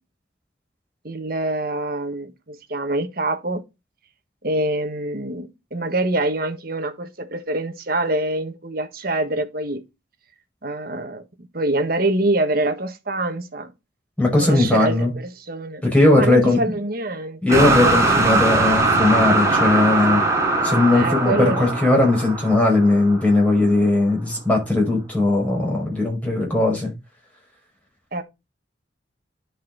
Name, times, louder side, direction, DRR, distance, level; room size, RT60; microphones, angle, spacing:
voice 1, 1.0-3.6 4.4-9.8 10.6-13.7 14.4-15.8 16.1-17.4 20.9-21.7 28.1-28.2, right 2 dB, 50° right, 1.5 m, -25 dB
voice 2, 14.2-15.1 15.8-16.6 17.4-20.2 20.6-26.9, left 2 dB, 5° left, 5.4 m, -18 dB
sound 1, 17.5-23.5, right 2 dB, 15° right, 2.8 m, -20 dB
10.5 x 5.5 x 3.9 m
head